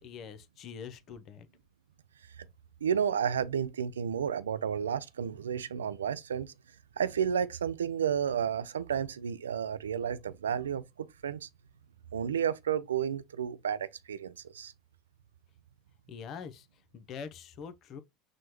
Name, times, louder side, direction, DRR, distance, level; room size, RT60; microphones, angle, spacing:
voice 1, 0.0-1.5 16.1-18.0, left 6 dB, 50° left, 0.6 m, -44 dB
voice 2, 2.8-6.5 7.0-11.5 12.1-14.7, right 8 dB, 90° right, 0.3 m, -32 dB
6.2 x 2.1 x 3.0 m
hypercardioid pair, 80°, 0 cm